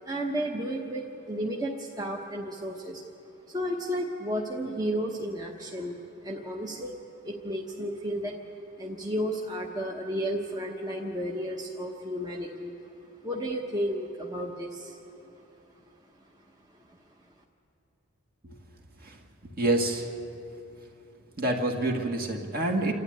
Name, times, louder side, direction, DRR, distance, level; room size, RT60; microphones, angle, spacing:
voice 1, 0.0-3.0 3.5-6.0 6.2-7.0 7.2-8.4 8.8-12.7 13.2-15.0, equal, 15° right, -1 dB, 1.1 m, -32 dB
voice 2, 19.6-20.1 21.4-22.9, right 2 dB, 45° right, 2 dB, 2.1 m, -27 dB
28.0 x 12.5 x 9.4 m, 2.9 s
head